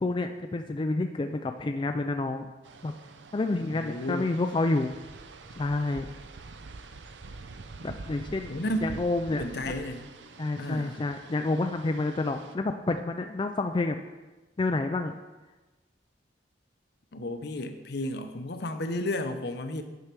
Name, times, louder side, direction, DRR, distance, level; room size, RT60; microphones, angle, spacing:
voice 1, 0.0-2.5 2.8-2.9 3.3-4.9 5.6-6.1 7.8-8.5 8.8-9.7 10.4-14.0 14.6-15.1, left 2 dB, 25° left, 6 dB, 0.4 m, -29 dB
sound 1, 2.6-12.6, right 3 dB, 85° right, 0.6 m, -46 dB
voice 2, 3.7-4.2 8.5-8.9 9.3-10.1 10.6-11.0 17.1-19.8, left 1 dB, 65° left, 8 dB, 0.7 m, -32 dB
9.7 x 4.7 x 6.1 m, 1.2 s
head